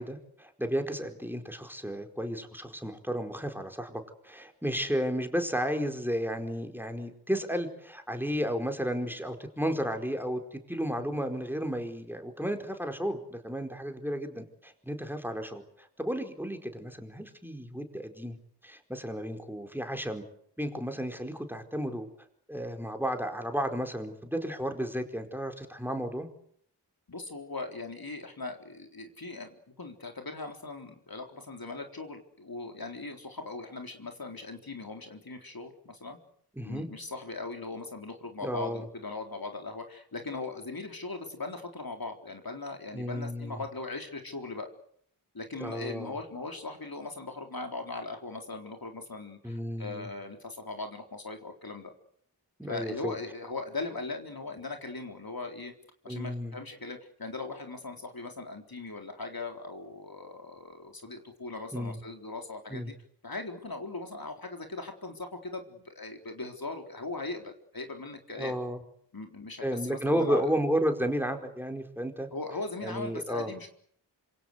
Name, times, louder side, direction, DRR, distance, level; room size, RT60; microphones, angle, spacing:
voice 1, 0.0-18.4 18.6-20.2 20.6-22.1 22.5-26.3 36.6-36.9 38.4-38.8 42.9-43.6 45.6-46.1 49.4-50.1 52.6-53.1 56.1-56.6 61.7-62.0 62.7-62.9 68.3-68.8 69.6-72.3 72.8-73.5, equal, 5° right, 5 dB, 4.6 m, -33 dB
voice 2, 27.1-36.2 36.6-44.7 45.3-51.9 52.7-55.7 56.0-62.9 63.2-68.6 69.1-70.5 72.3-73.7, left 3 dB, 55° left, 4 dB, 4.0 m, -39 dB
27.0 x 25.5 x 8.2 m, 0.66 s
wide cardioid pair, 60°, 41 cm